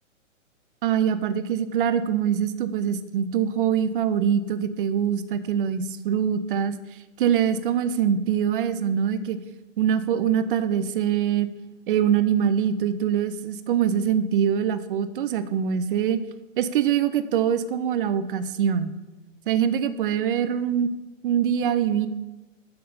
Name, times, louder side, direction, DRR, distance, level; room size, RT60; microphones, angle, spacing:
voice 1, 0.8-6.7 7.2-9.4 9.8-11.5 11.9-16.2 16.6-18.9 19.5-20.9 21.2-22.1, right 8 dB, 40° right, 13 dB, 0.7 m, -23 dB
7.6 x 6.6 x 5.6 m, 1.1 s
figure-of-eight pair, 120°, 39 cm